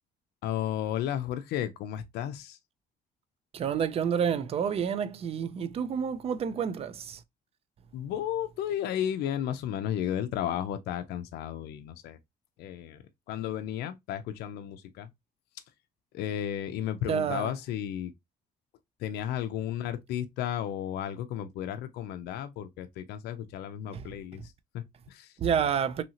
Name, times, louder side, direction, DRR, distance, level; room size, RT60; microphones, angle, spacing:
voice 1, 0.4-2.6 7.9-12.2 12.6-15.1 16.1-18.1 19.0-25.3, left 10 dB, 75° left, 0.4 m, -33 dB
voice 2, 3.5-7.2 17.1-17.5 23.9-24.0 25.4-26.0, right 7 dB, 35° right, 0.4 m, -29 dB
2.8 x 2.8 x 2.7 m
cardioid pair, 110°, 17 cm